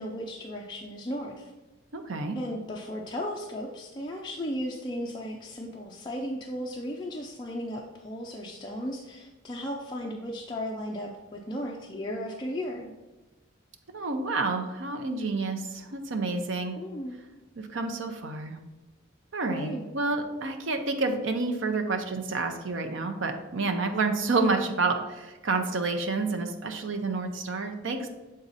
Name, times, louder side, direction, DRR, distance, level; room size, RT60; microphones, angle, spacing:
voice 1, 0.0-1.5 2.4-12.9 16.8-17.1 19.5-19.9, equal, 20° left, -2 dB, 0.5 m, -35 dB
voice 2, 1.9-2.4 13.9-16.8 17.6-18.6 19.3-28.1, right 3 dB, 75° right, 5 dB, 0.7 m, -29 dB
7.3 x 3.9 x 4.0 m, 1.1 s
head